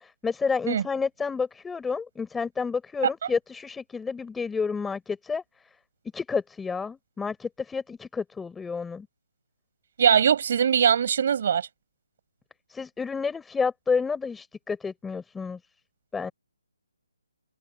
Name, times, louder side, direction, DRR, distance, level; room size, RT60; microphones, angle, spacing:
voice 1, 0.0-5.4 6.1-9.1 12.7-15.6 16.1-16.3, left 5 dB, 5° left, 5.8 m, -30 dB
voice 2, 10.0-11.7, right 8 dB, 45° right, 7.3 m, -21 dB
open air
hypercardioid pair, 165°, 0 cm